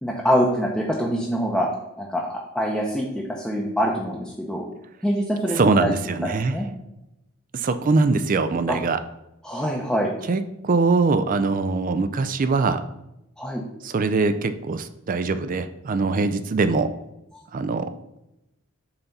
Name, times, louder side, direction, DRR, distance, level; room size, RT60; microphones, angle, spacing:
voice 1, 0.0-1.7 2.0-4.7 5.0-5.9 6.2-6.7 8.7-8.8 9.4-10.1 13.4-13.6, equal, 5° left, -3 dB, 0.6 m, -25 dB
voice 2, 5.5-6.6 7.5-9.0 10.3-12.8 13.8-16.9 17.5-17.9, right 3 dB, 35° right, 10 dB, 0.4 m, -22 dB
5.7 x 4.1 x 5.4 m, 0.90 s
head